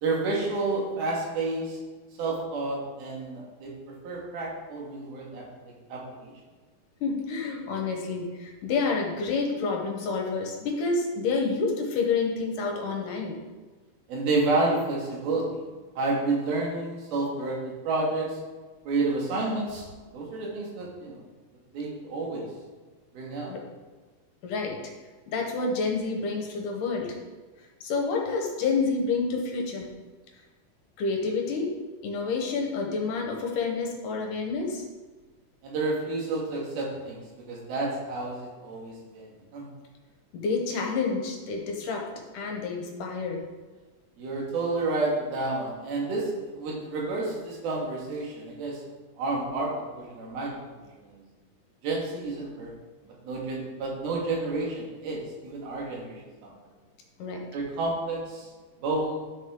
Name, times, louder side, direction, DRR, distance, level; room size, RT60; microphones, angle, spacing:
voice 1, 0.0-1.8 2.2-6.3 14.1-15.6 16.0-18.4 18.9-19.9 20.1-21.2 21.7-22.5 23.1-23.5 35.6-39.7 44.2-48.8 49.2-51.2 51.8-52.7 53.1-56.5 57.5-58.5 58.8-59.2, right 2 dB, 90° right, -3 dB, 3.7 m, -30 dB
voice 2, 7.0-13.4 23.5-23.6 24.4-24.9 25.3-27.2 27.8-29.9 31.0-31.7 32.0-34.8 40.3-42.1 42.3-43.5 57.2-57.5, left 4 dB, 70° left, 1 dB, 2.4 m, -29 dB
10.5 x 6.3 x 3.7 m, 1.3 s
omnidirectional pair, 4.2 m